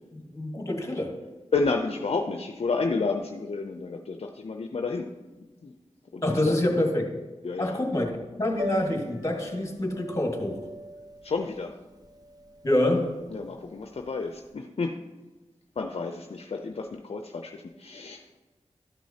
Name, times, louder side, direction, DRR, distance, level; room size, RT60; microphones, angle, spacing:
voice 1, 0.1-1.2 6.2-7.1 7.6-8.1 8.4-10.6 12.6-13.2, left 1 dB, 25° left, 2 dB, 1.7 m, -26 dB
voice 2, 1.5-5.1 5.6-5.7 6.1-6.6 7.4-7.8 11.2-11.7 13.3-15.0 15.8-18.4, left 4 dB, 60° left, 4 dB, 0.5 m, -30 dB
Piano, 8.5-14.5, equal, 35° right, 0.8 m, -39 dB
12.0 x 6.1 x 2.8 m, 1.2 s
cardioid pair, 50°, 12 cm